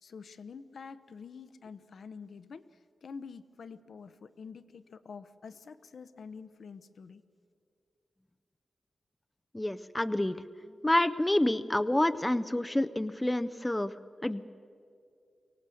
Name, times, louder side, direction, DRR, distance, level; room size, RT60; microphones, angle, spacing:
voice 1, 0.0-2.7 3.0-7.2, left 5 dB, 70° left, 13 dB, 0.7 m, -47 dB
voice 2, 9.5-13.9 14.2-14.5, left 1 dB, 10° left, 11 dB, 0.4 m, -28 dB
24.0 x 18.0 x 7.7 m, 2.4 s
wide cardioid pair, 170°, 0 cm